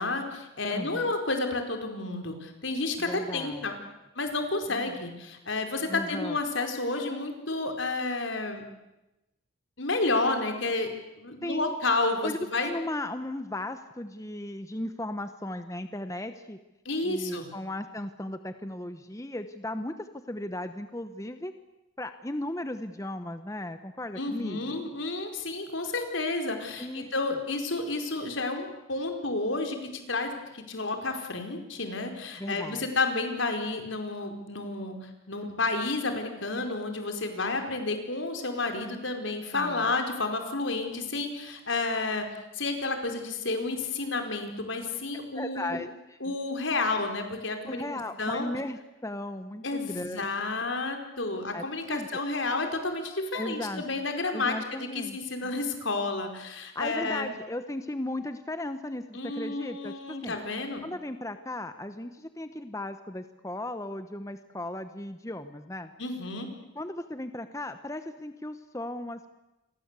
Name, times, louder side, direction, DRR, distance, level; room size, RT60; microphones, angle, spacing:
voice 1, 0.0-3.8 4.1-8.6 9.8-10.9 11.2-12.7 16.8-17.5 24.2-35.0 35.3-42.2 42.5-45.8 46.2-47.8 48.2-48.5 49.6-57.3 59.1-60.8 66.0-66.5, left 3 dB, 75° left, 5 dB, 4.8 m, -31 dB
voice 2, 0.7-1.1 3.1-3.7 4.7-5.1 5.9-6.4 11.4-11.7 12.2-16.6 17.0-21.5 22.0-24.8 26.8-27.1 32.4-32.9 39.5-39.9 45.3-46.3 47.7-50.3 51.5-52.2 53.3-53.8 54.3-55.2 56.7-60.3 60.8-65.9 66.7-69.3, left 1 dB, 15° left, 9 dB, 1.0 m, -36 dB
28.5 x 23.0 x 8.3 m, 0.98 s
head